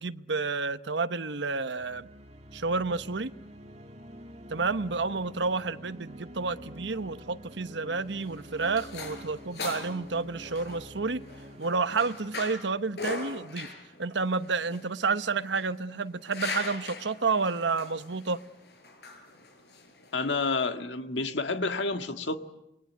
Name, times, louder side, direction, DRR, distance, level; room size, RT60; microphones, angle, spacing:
voice 1, 0.0-2.1 2.5-3.3 4.5-11.2 11.6-13.7 14.0-18.4, right 4 dB, 85° right, 1.0 m, -30 dB
sound 1, 1.7-13.3, equal, 35° right, 2.1 m, -48 dB
sound 2, 8.0-20.3, left 4 dB, 65° left, 5.8 m, -41 dB
voice 2, 20.1-22.4, left 3 dB, 85° left, 1.9 m, -29 dB
27.5 x 22.5 x 9.6 m
head